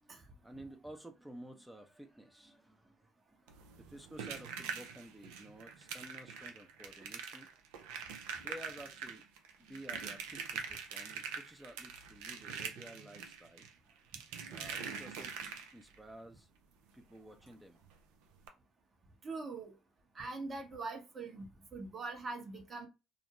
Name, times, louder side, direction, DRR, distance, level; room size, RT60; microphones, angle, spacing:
voice 1, 0.0-3.4 3.7-7.5 8.3-9.2 9.6-13.7 14.5-15.3 15.7-16.5 16.9-17.9, right 1 dB, 10° right, 0.5 m, -53 dB
sound 1, 3.5-16.0 17.4-17.5 17.8-18.0 18.4-18.5, right 6 dB, 80° right, 0.4 m, -44 dB
voice 2, 19.2-19.7 20.1-21.5 21.7-22.9, right 3 dB, 45° right, 0.9 m, -42 dB
2.5 x 2.1 x 2.9 m
hypercardioid pair, 60°, 0 cm